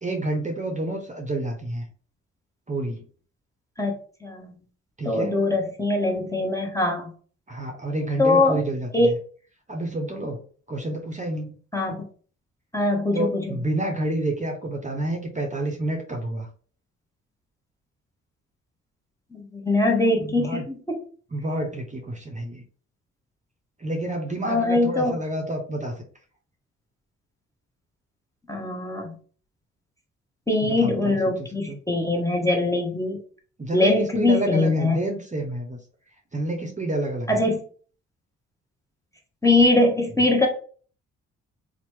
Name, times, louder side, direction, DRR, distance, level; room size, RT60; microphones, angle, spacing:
voice 1, 0.0-1.8 2.7-3.0 5.0-5.4 7.5-9.2 9.7-10.4 10.7-11.6 13.1-16.5 20.2-20.7 21.3-22.6 23.8-25.9 30.6-31.8 33.6-35.8 36.3-37.4, right 1 dB, 20° right, 1 dB, 0.8 m, -29 dB
voice 2, 4.2-4.5 5.0-7.1 8.2-8.6 8.9-9.1 11.7-12.0 12.7-13.6 19.3-21.0 24.4-25.1 28.5-29.1 30.5-33.2 33.7-35.0 37.3-37.6 39.4-40.5, left 2 dB, 10° left, 1 dB, 0.9 m, -22 dB
2.9 x 2.1 x 3.4 m, 0.43 s
hypercardioid pair, 50°, 34 cm